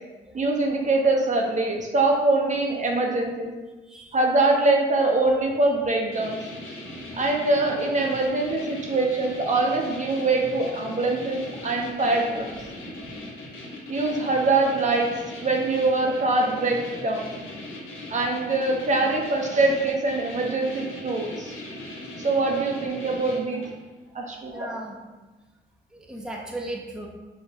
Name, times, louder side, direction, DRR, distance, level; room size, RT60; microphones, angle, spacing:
voice 1, 0.3-3.5 4.1-6.4 7.2-12.5 13.9-15.1 15.4-17.3 18.1-21.5 22.2-23.6 24.1-24.7, right 2 dB, 40° right, 0 dB, 0.7 m, -23 dB
voice 2, 3.9-4.2 17.9-18.0 24.5-25.0 25.9-27.1, right 1 dB, 5° right, -1 dB, 0.6 m, -36 dB
sound 1, 6.1-23.8, left 1 dB, 80° left, 1.3 m, -39 dB
4.7 x 2.1 x 4.4 m, 1.2 s
cardioid pair, 90°, 20 cm